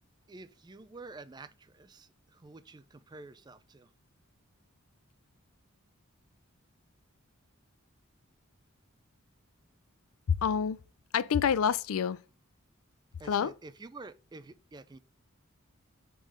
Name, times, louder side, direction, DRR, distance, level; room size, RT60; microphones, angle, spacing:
voice 1, 0.3-3.9 13.2-15.0, right 3 dB, 20° right, 0.4 m, -49 dB
voice 2, 10.3-10.8 11.1-12.2 13.3-13.5, left 7 dB, 90° left, 0.4 m, -27 dB
5.1 x 3.8 x 4.8 m
head